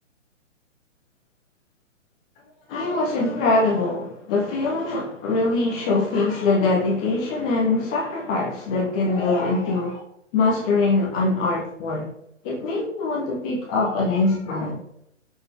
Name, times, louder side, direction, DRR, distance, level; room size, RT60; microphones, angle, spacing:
voice 1, 2.7-10.0 10.3-12.1 12.4-14.8, left 3 dB, 5° left, 0.4 m, -23 dB
16.5 x 6.1 x 3.5 m
figure-of-eight pair, 130°, 37 cm